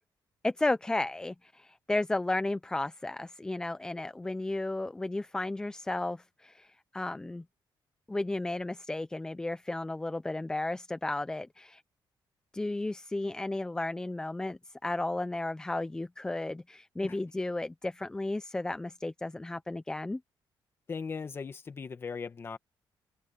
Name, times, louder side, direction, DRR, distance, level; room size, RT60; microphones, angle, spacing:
voice 1, 0.4-7.4 8.1-11.8 12.5-20.2, left 2 dB, 10° left, 0.4 m, -33 dB
voice 2, 20.9-22.6, left 5 dB, 30° left, 1.6 m, -38 dB
cardioid pair, 175°, 9 cm